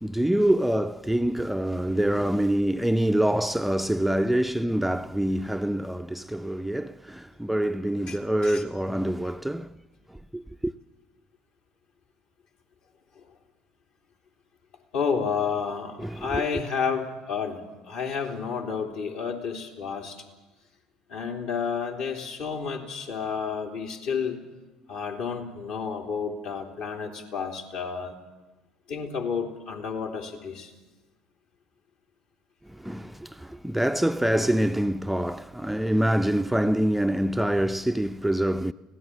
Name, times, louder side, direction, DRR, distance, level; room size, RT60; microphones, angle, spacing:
voice 1, 0.0-9.8 10.3-10.7 16.0-16.4 32.7-38.7, right 1 dB, 5° right, 0.6 m, -25 dB
voice 2, 14.9-20.2 21.1-24.4 24.9-28.2 28.9-30.7, left 6 dB, 60° left, 3.3 m, -31 dB
25.0 x 17.0 x 7.5 m
figure-of-eight pair, 60°, 3 cm